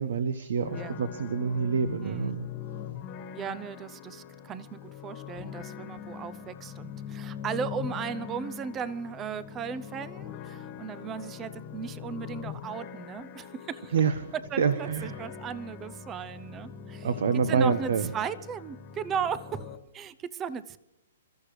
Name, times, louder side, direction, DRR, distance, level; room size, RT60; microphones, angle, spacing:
voice 1, 0.0-2.4 13.9-14.1 14.6-15.1 17.0-18.1, right 6 dB, 75° right, 11 dB, 1.2 m, -27 dB
sound 1, 0.6-19.8, left 8 dB, 30° left, 1.5 m, -42 dB
voice 2, 0.7-1.1 2.0-2.3 3.3-13.9 14.5-17.1 17.5-20.8, right 7 dB, 20° right, 16 dB, 0.6 m, -36 dB
28.5 x 14.0 x 3.3 m, 0.86 s
hypercardioid pair, 155°, 0 cm